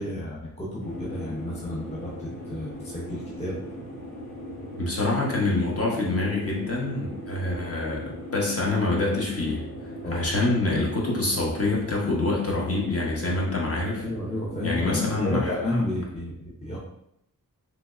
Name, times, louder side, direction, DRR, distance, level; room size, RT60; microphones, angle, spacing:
voice 1, 0.0-3.6 10.0-10.2 14.0-16.8, left 1 dB, 20° left, -5 dB, 0.6 m, -31 dB
sound 1, 0.8-15.8, equal, 85° left, 1.3 m, -39 dB
voice 2, 4.8-9.6 10.1-14.1 14.6-15.8, left 2 dB, 45° left, -3 dB, 0.9 m, -26 dB
3.3 x 3.0 x 2.4 m, 0.77 s
wide cardioid pair, 120°, 34 cm